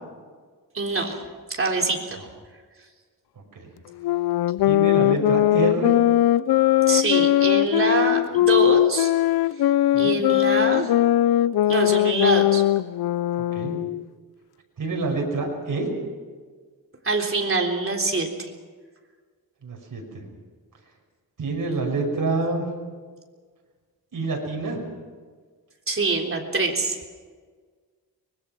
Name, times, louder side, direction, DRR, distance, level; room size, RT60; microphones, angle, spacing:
voice 1, 0.7-1.2 1.5-2.2 6.9-9.1 10.0-10.9 11.7-12.6 17.0-18.5 25.9-27.0, right 3 dB, 35° right, 1 dB, 3.6 m, -24 dB
sound 1, 4.0-14.0, left 14 dB, 90° left, 0.5 m, -20 dB
voice 2, 4.6-5.9 9.9-10.2 13.5-13.8 14.8-15.9 19.6-20.2 21.4-22.7 24.1-24.8, right 3 dB, 60° right, 1 dB, 6.0 m, -27 dB
24.5 x 21.0 x 6.1 m, 1.5 s
wide cardioid pair, 105°, 36 cm